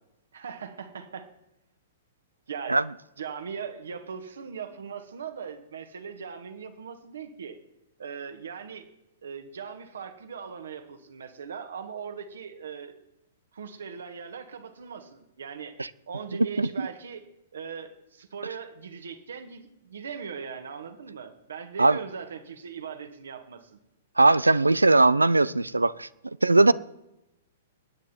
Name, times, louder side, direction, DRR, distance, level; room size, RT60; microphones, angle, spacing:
voice 1, 0.3-1.3 2.5-2.8 3.2-7.6 8.0-8.9 9.2-13.0 13.5-15.8 16.1-17.2 17.5-23.8, right 6 dB, 70° right, 1.8 m, -39 dB
voice 2, 24.2-26.1 26.4-26.7, right 2 dB, 90° right, 0.5 m, -19 dB
23.0 x 9.6 x 4.5 m
figure-of-eight pair, 110°, 0 cm